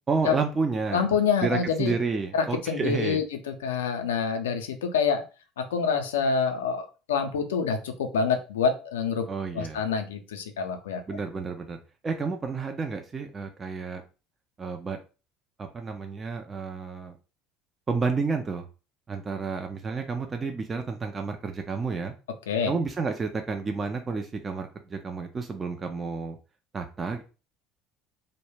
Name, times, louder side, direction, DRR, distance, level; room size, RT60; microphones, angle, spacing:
voice 1, 0.1-1.0 1.4-3.2 9.3-9.8 11.1-11.8 12.0-14.0 14.6-15.0 15.6-17.1 17.9-18.7 19.1-22.1 22.7-26.4 26.7-27.2, right 4 dB, 30° right, 4 dB, 0.3 m, -30 dB
voice 2, 0.9-2.0 2.3-3.2 3.6-5.2 5.6-9.3 9.5-11.0 22.5-22.7, left 6 dB, 80° left, 6 dB, 0.4 m, -26 dB
2.1 x 2.0 x 3.1 m, 0.33 s
hypercardioid pair, 65°, 0 cm